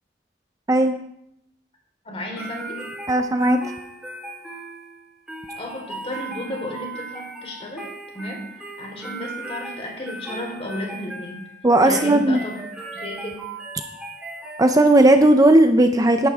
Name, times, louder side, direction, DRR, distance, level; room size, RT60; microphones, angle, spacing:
voice 1, 2.0-2.8 5.6-7.8 8.1-11.4 11.8-12.6 12.9-13.4, left 1 dB, 35° left, 0 dB, 4.2 m, -33 dB
sound 1, 2.4-15.2, right 2 dB, 5° right, 3.8 m, -37 dB
voice 2, 3.1-3.6 11.6-12.4 14.6-16.3, right 1 dB, 20° right, 6 dB, 0.6 m, -15 dB
17.0 x 11.0 x 3.6 m, 0.77 s
head